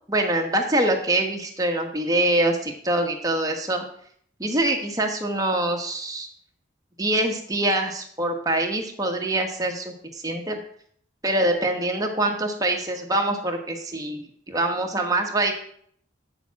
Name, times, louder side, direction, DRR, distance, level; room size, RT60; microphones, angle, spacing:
voice 1, 0.1-3.8 4.4-6.3 7.0-10.6 11.2-15.5, right 1 dB, 20° right, 3 dB, 1.3 m, -24 dB
8.5 x 7.0 x 5.8 m, 0.62 s
head